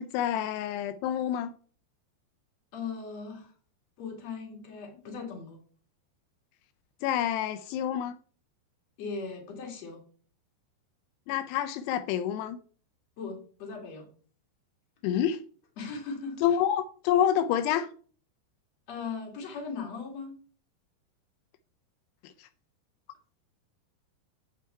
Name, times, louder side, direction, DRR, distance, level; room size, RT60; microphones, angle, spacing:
voice 1, 0.0-1.5 7.0-8.2 11.3-12.6 15.0-15.4 16.4-17.9 22.2-22.5, left 10 dB, 90° left, 2.3 m, -28 dB
voice 2, 2.7-3.5 4.0-5.6 9.0-10.0 13.2-14.1 15.8-16.4 18.9-20.3, left 5 dB, 45° left, 2.8 m, -38 dB
8.1 x 7.2 x 4.4 m
omnidirectional pair, 5.4 m